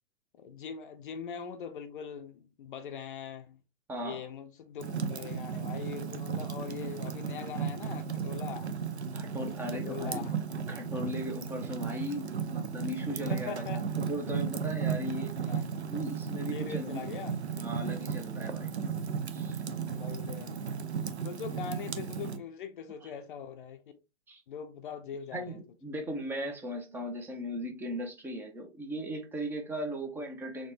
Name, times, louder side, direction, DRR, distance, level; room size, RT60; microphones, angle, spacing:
voice 1, 0.3-3.6 4.0-8.7 9.4-10.6 13.3-13.9 15.4-15.7 16.5-17.4 19.9-20.6 21.2-24.0 24.5-25.6, left 7 dB, 50° left, 0.5 m, -42 dB
voice 2, 3.9-4.2 9.1-10.3 10.7-15.4 15.9-17.0 17.5-18.8 19.3-19.6 21.2-21.3 23.0-23.1 24.3-24.4 25.3-30.7, equal, 5° right, 0.5 m, -38 dB
Fire, 4.8-22.4, right 6 dB, 75° right, 0.7 m, -35 dB
4.4 x 2.8 x 2.7 m
figure-of-eight pair, 110°, 34 cm